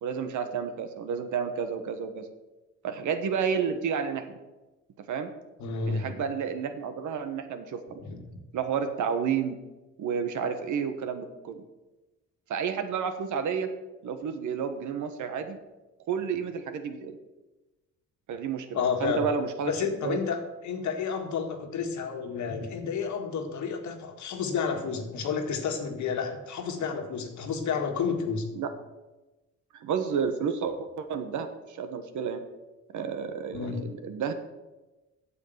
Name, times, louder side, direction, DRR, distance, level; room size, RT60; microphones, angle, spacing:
voice 1, 0.0-2.3 2.8-4.4 5.0-5.3 5.9-8.0 8.5-9.5 10.0-11.6 12.5-13.7 14.0-15.6 16.1-17.2 18.3-20.2 28.5-28.7 29.7-32.4 32.9-34.3, right 6 dB, 75° right, 8 dB, 1.3 m, -31 dB
voice 2, 5.6-6.2 8.1-8.4 18.7-19.3 19.7-20.4 20.6-28.5 33.5-33.8, left 6 dB, 70° left, 4 dB, 1.8 m, -30 dB
8.4 x 7.3 x 8.0 m, 1.1 s
cardioid pair, 90°, 30 cm